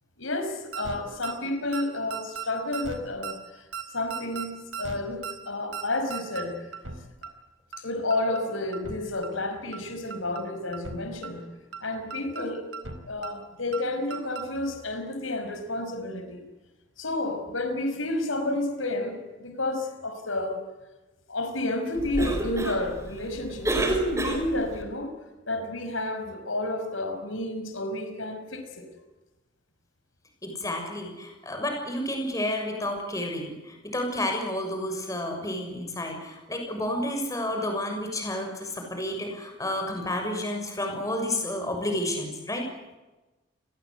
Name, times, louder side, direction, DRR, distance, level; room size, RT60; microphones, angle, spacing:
voice 1, 0.2-6.7 7.8-11.5 11.8-12.6 13.1-16.4 17.0-20.6 21.3-25.1 25.5-28.8, left 2 dB, 90° left, 7 dB, 5.5 m, -31 dB
sound 1, 0.7-1.0 1.2-1.3 1.7-1.8 2.1-2.5 2.7-3.0 3.2-3.3 3.7-3.8 4.1-4.5 4.7-5.0 5.2-5.3 5.7-5.8 6.1-6.4 6.7-7.0 7.2-7.3 7.7-7.8 8.1-8.4 8.7-9.0 9.2-9.3 9.7-9.8 10.1-10.4 10.7-11.0 11.2-11.3 11.7-11.8 12.1-12.4 12.7-13.0 13.2-13.3 13.7-13.8 14.1-14.4 14.7-14.8, right 6 dB, 90° right, 4.2 m, -36 dB
Cough, 21.9-24.8, right 2 dB, 15° right, 4.3 m, -29 dB
voice 2, 30.4-42.6, left 1 dB, 15° left, 3 dB, 6.7 m, -31 dB
29.5 x 21.5 x 8.1 m, 1.1 s
head